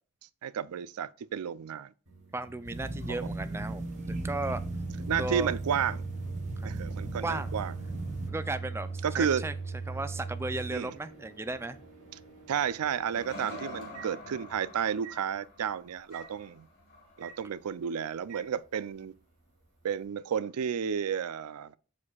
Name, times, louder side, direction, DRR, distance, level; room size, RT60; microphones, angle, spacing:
voice 1, 0.4-1.9 3.2-3.3 5.1-6.0 6.6-7.7 9.0-9.4 10.7-10.9 12.5-16.7 17.2-19.1 19.8-21.8, right 7 dB, 85° right, 0.4 m, -32 dB
Microwave oven, 2.1-14.6 15.0-15.2 16.1-16.3 17.2-17.4 18.3-18.5, right 4 dB, 55° right, 2.9 m, -40 dB
voice 2, 2.3-4.6 5.2-5.5 6.6-6.7 7.2-7.5 8.3-9.5 9.9-11.8, right 2 dB, 10° right, 0.3 m, -35 dB
sound 1, 2.5-3.8 6.5-12.4 12.9-18.0 20.4-20.5, left 1 dB, 40° left, 3.7 m, -50 dB
sound 2, 2.6-8.3, right 1 dB, 30° right, 0.9 m, -38 dB
7.3 x 6.4 x 2.3 m
head